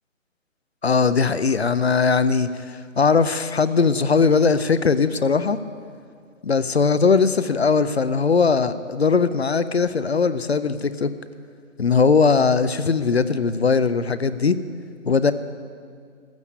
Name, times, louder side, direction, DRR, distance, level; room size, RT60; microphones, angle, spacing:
voice 1, 0.8-5.6 6.4-11.1 11.8-14.6 15.1-15.3, left 5 dB, 50° left, 14 dB, 0.5 m, -19 dB
13.5 x 8.2 x 8.3 m, 2.1 s
hypercardioid pair, 180°, 40 cm